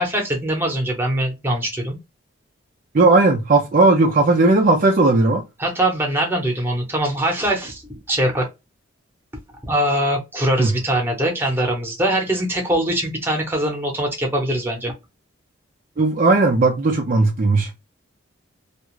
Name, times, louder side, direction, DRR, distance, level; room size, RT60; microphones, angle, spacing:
voice 1, 0.0-2.0 5.6-7.8 8.1-8.4 9.6-14.9, right 1 dB, 10° right, 0.9 m, -22 dB
voice 2, 2.9-5.4 10.6-10.8 16.0-17.7, right 2 dB, 40° right, 0.4 m, -16 dB
2.4 x 2.3 x 3.0 m
head